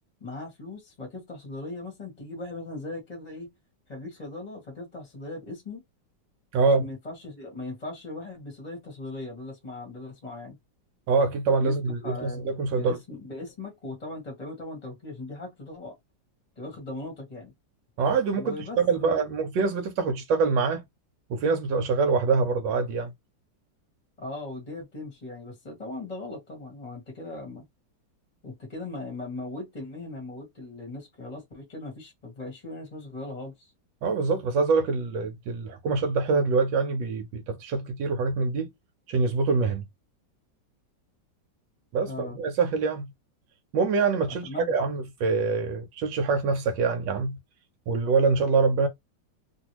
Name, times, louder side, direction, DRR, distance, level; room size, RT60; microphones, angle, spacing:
voice 1, 0.2-3.5 3.9-5.8 6.6-10.6 11.6-11.7 12.0-16.0 16.6-17.5 18.3-19.3 24.2-27.6 28.4-33.7 42.0-42.4 44.3-44.8, left 2 dB, 25° left, 1.0 m, -39 dB
voice 2, 6.5-6.8 11.1-13.0 18.0-20.8 21.3-23.1 34.0-38.7 39.1-39.8 41.9-43.0 43.7-47.4 47.9-48.9, right 4 dB, 80° right, 1.3 m, -25 dB
2.9 x 2.6 x 2.9 m
omnidirectional pair, 2.0 m